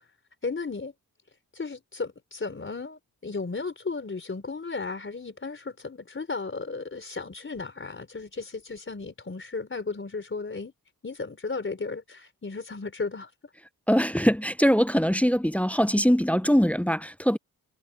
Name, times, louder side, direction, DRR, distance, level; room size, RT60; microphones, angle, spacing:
voice 1, 0.4-0.9 1.5-10.7 11.0-13.3, left 4 dB, 35° left, 4.4 m, -34 dB
voice 2, 13.9-17.4, equal, 5° left, 0.5 m, -22 dB
wide cardioid pair, 105°, 36 cm